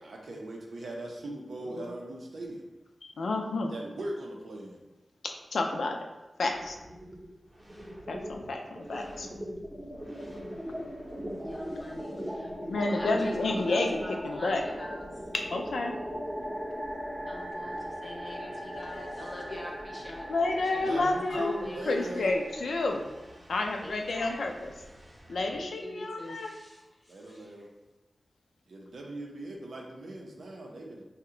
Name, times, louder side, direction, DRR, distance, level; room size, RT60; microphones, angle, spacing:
voice 1, 0.0-2.6 3.7-4.8 20.8-22.3 27.1-27.7 28.7-31.0, right 1 dB, 80° right, 0 dB, 0.5 m, -39 dB
voice 2, 1.6-1.9 3.0-3.7 5.2-6.0 6.4-6.8 8.1-9.3 12.7-14.0 14.2-14.6 15.3-16.0 20.3-21.5 21.9-23.1 23.5-24.7 25.3-26.5, left 2 dB, 85° left, 3 dB, 0.3 m, -30 dB
sound 1, 6.5-7.3 7.6-25.6, equal, 20° right, 0.6 m, -39 dB
voice 3, 11.4-12.5 12.8-15.2 17.3-20.3 20.5-22.0 23.8-24.5 25.0-25.2 25.5-27.5, left 1 dB, 25° left, -1 dB, 0.6 m, -44 dB
2.8 x 2.1 x 3.6 m, 1.1 s
wide cardioid pair, 105°, 0 cm